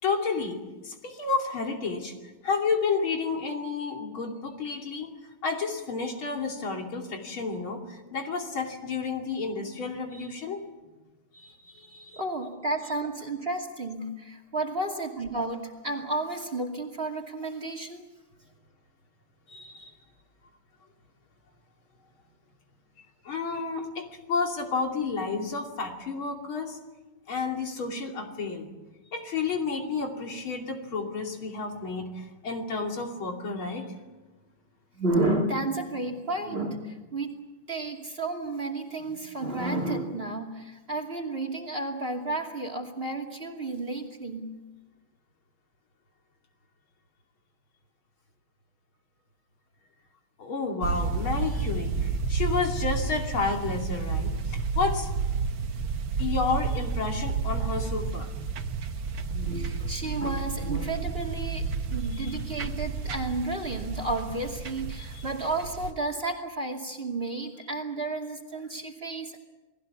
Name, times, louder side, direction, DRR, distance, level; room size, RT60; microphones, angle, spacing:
voice 1, 0.0-2.2 2.4-5.2 5.4-10.6 11.3-12.2 19.5-20.0 23.2-26.8 27.3-28.7 29.1-34.0 50.4-55.1 56.2-58.3 62.1-62.4 64.9-65.2, left 4 dB, 70° left, 2 dB, 3.5 m, -31 dB
voice 2, 12.1-18.0 35.0-37.3 37.7-44.5 59.3-61.6 61.9-69.4, right 2 dB, 25° right, 5 dB, 2.6 m, -32 dB
sound 1, 50.8-65.9, right 5 dB, 65° right, 1.9 m, -31 dB
29.0 x 19.5 x 7.2 m, 1.1 s
omnidirectional pair, 2.4 m